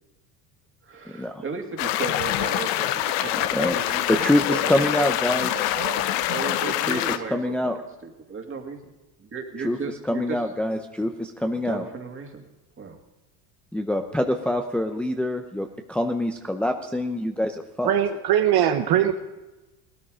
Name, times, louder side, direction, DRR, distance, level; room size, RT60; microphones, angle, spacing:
voice 1, 0.9-5.1 5.4-7.5 8.0-8.8 9.2-10.4 11.6-12.4 12.8-13.0, right 5 dB, 25° right, 3 dB, 2.4 m, -35 dB
sound 1, 1.8-7.2, left 13 dB, 80° left, 1.0 m, -25 dB
voice 2, 4.1-5.7 6.9-7.0 7.3-7.8 9.6-9.8 10.1-11.9 13.7-17.9, left 1 dB, 5° left, 4 dB, 0.7 m, -25 dB
voice 3, 17.8-19.1, right 10 dB, 55° right, 6 dB, 1.1 m, -21 dB
17.5 x 13.0 x 5.1 m, 1.1 s
supercardioid pair, 110°, 47 cm